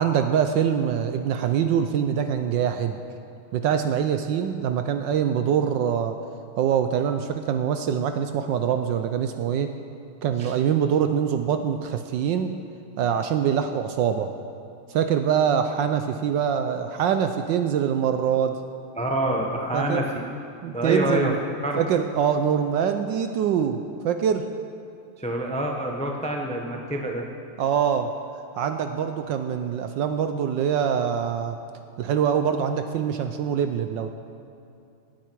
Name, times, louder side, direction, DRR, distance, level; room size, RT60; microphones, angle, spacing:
voice 1, 0.0-3.0 3.5-6.2 6.6-9.7 10.2-12.6 13.0-14.3 14.9-18.6 19.7-20.0 20.6-21.4 21.7-24.5 27.6-28.1 28.6-31.6 32.0-34.1, right 8 dB, 75° right, 8 dB, 1.1 m, -24 dB
voice 2, 19.0-20.2 20.7-21.4 21.6-21.8 25.2-27.3, right 1 dB, 10° left, 1 dB, 0.3 m, -26 dB
17.5 x 9.2 x 4.6 m, 2.6 s
omnidirectional pair, 2.3 m